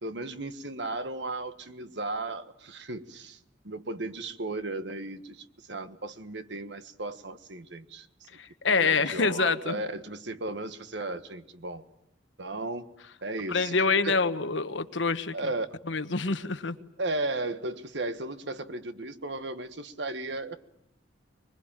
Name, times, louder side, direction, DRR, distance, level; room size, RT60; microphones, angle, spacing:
voice 1, 0.0-3.4 3.6-8.4 8.6-11.8 12.4-12.9 13.2-14.2 15.3-15.7 17.0-20.6, right 2 dB, 70° right, 10 dB, 1.5 m, -35 dB
voice 2, 8.4-9.8 13.5-15.3 15.9-16.8, left 4 dB, 90° left, 11 dB, 1.3 m, -26 dB
25.0 x 21.5 x 9.0 m, 0.78 s
head